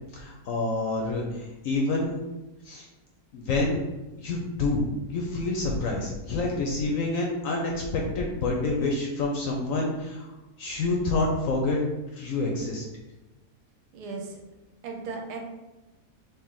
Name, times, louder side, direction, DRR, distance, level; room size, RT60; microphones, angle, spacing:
voice 1, 0.1-2.2 2.6-2.9 3.3-3.8 4.2-4.8 5.1-10.3 10.6-11.8 12.2-12.8, left 2 dB, 70° left, -1 dB, 0.8 m, -27 dB
voice 2, 13.9-14.4 14.8-15.4, right 4 dB, 80° right, 2 dB, 1.2 m, -36 dB
3.3 x 2.7 x 3.7 m, 1.0 s
omnidirectional pair, 1.8 m